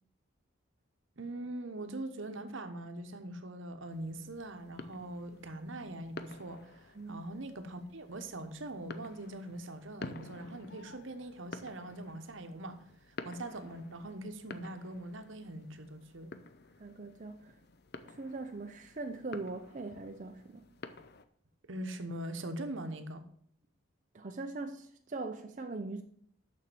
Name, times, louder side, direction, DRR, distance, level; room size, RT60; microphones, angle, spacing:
voice 1, 1.2-12.8 13.2-16.3 21.7-23.2, right 1 dB, 70° right, 1.0 m, -42 dB
sound 1, 3.9-21.2, left 3 dB, 50° left, 0.6 m, -51 dB
voice 2, 16.8-17.6 18.0-20.6 24.1-26.0, right 3 dB, 40° right, 0.6 m, -41 dB
7.2 x 6.2 x 6.9 m
head